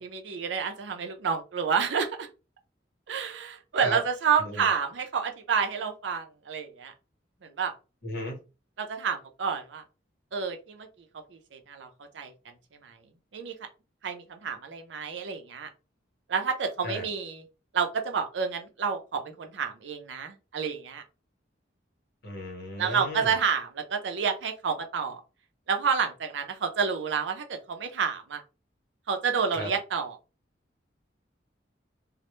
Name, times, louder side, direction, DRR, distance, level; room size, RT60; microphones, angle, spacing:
voice 1, 0.0-2.3 3.1-6.9 7.4-7.7 8.8-9.8 10.3-12.3 12.8-13.0 13.3-13.5 14.0-15.7 16.3-17.4 17.7-21.0 22.8-25.2 25.7-28.4 29.1-30.2, right 6 dB, 75° right, 5 dB, 0.5 m, -29 dB
voice 2, 8.0-8.4 16.8-17.1 22.2-23.3 29.6-29.7, left 1 dB, 60° left, 1 dB, 0.9 m, -35 dB
2.0 x 2.0 x 3.0 m, 0.31 s
head